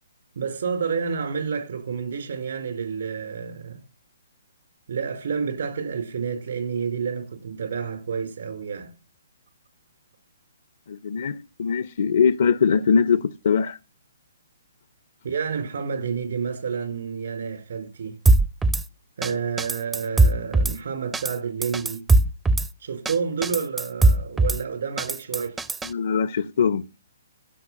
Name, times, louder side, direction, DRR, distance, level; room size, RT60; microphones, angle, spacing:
voice 1, 0.3-3.8 4.9-8.9 15.2-18.2 19.2-22.0 22.8-25.6, right 6 dB, 65° right, 3.9 m, -29 dB
voice 2, 10.9-13.8 19.3-19.4 25.8-26.9, left 6 dB, 60° left, 0.5 m, -22 dB
Drum kit / Snare drum, 18.3-18.8 19.2-19.3 19.6-20.8 21.1-21.3 21.6-22.7 23.1-23.2 23.4-24.6 25.0-25.9, right 2 dB, 10° right, 0.5 m, -19 dB
15.5 x 5.7 x 7.4 m
figure-of-eight pair, 130°, 0 cm